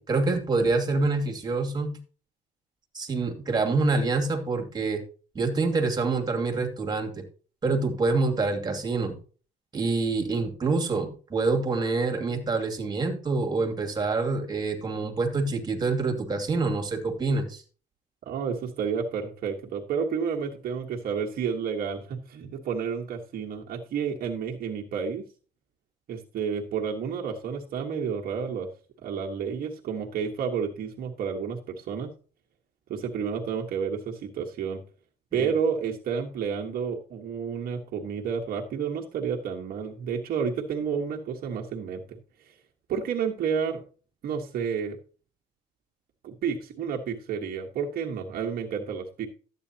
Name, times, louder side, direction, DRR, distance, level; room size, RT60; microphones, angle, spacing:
voice 1, 0.0-2.0 2.9-5.0 5.3-7.2 7.6-9.2 9.7-17.6 35.4-35.5, right 3 dB, 25° right, 3 dB, 2.4 m, -26 dB
voice 2, 18.2-25.2 26.1-28.7 29.0-32.1 32.9-34.8 35.3-42.5 42.9-43.8 44.2-45.0 46.2-49.3, right 6 dB, 60° right, 1 dB, 1.4 m, -30 dB
12.5 x 8.9 x 2.9 m, 0.39 s
cardioid pair, 110°, 17 cm